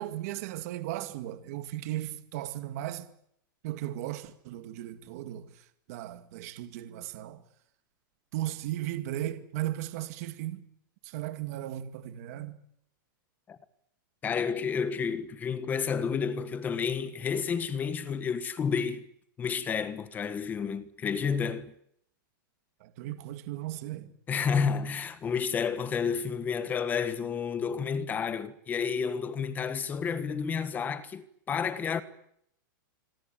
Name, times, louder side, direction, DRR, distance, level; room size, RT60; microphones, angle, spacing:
voice 1, 0.0-3.1 3.6-5.5 5.9-7.4 8.3-10.6 11.0-12.6 22.8-24.1, right 14 dB, 45° right, 2.1 m, -36 dB
voice 2, 14.2-19.0 19.4-21.7 24.3-32.0, left 6 dB, 15° left, 1.5 m, -30 dB
26.0 x 23.5 x 9.1 m
supercardioid pair, 160°, 11 cm